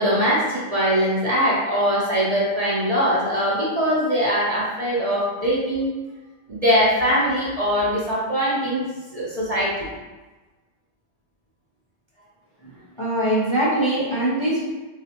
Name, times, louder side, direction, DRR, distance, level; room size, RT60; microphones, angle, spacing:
voice 1, 0.0-5.9 6.5-8.9 9.1-9.9, equal, 40° right, -7 dB, 0.6 m, -21 dB
voice 2, 13.0-14.7, right 1 dB, 35° left, -8 dB, 0.5 m, -22 dB
4.1 x 2.3 x 2.8 m, 1.2 s
omnidirectional pair, 1.2 m